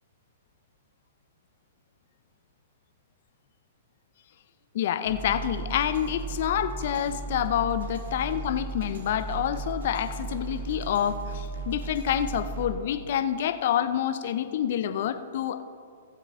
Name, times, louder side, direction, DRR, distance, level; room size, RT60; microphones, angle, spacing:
voice 1, 4.7-15.6, left 10 dB, 60° left, 11 dB, 0.5 m, -28 dB
sound 1, 5.1-12.7, right 4 dB, 75° right, 1.8 m, -36 dB
15.5 x 7.6 x 3.6 m, 2.2 s
hypercardioid pair, 120°, 0 cm